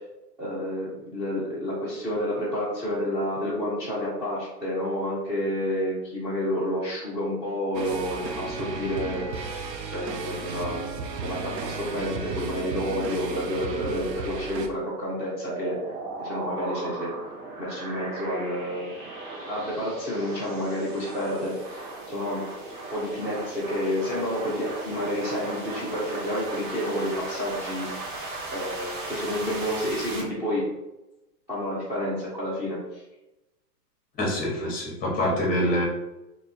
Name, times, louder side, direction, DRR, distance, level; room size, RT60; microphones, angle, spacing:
voice 1, 0.4-9.3 9.9-15.9 16.2-17.1 17.6-18.9 19.5-22.4 22.9-27.9 28.1-28.2 28.5-30.7 31.5-33.0, equal, 5° right, -10 dB, 0.5 m, -30 dB
sound 1, 7.7-14.7, right 3 dB, 85° right, 0.7 m, -34 dB
sound 2, 15.4-30.2, right 2 dB, 60° right, 1.2 m, -37 dB
voice 2, 34.2-35.8, left 1 dB, 20° left, -2 dB, 1.0 m, -25 dB
2.8 x 2.4 x 4.1 m, 0.96 s
hypercardioid pair, 125°, 49 cm